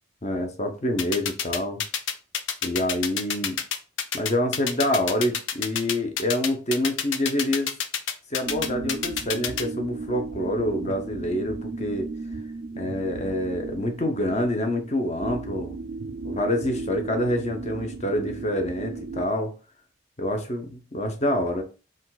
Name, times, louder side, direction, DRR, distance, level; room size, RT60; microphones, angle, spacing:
voice 1, 0.2-1.8 2.6-3.6 4.1-7.7 8.3-12.1 12.8-15.7 16.2-19.5 20.2-21.6, left 1 dB, 35° left, 0.9 m, -27 dB
sound 1, 1.0-9.6, left 8 dB, 75° left, 0.6 m, -27 dB
sound 2, 8.4-19.3, right 3 dB, 60° right, 0.4 m, -35 dB
5.1 x 2.4 x 4.0 m
head